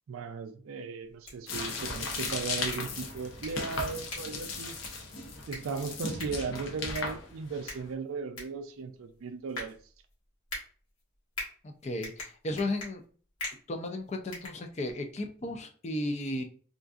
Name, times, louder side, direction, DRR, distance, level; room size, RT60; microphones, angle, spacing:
voice 1, 0.1-4.7 5.5-9.8, right 4 dB, 75° right, 0.4 m, -37 dB
sound 1, 1.0-15.2, left 2 dB, 85° left, 1.5 m, -45 dB
sound 2, 1.5-7.9, left 3 dB, 65° left, 0.7 m, -37 dB
voice 2, 11.8-13.0 13.7-16.4, left 1 dB, 30° left, 0.4 m, -34 dB
3.7 x 2.5 x 2.3 m
head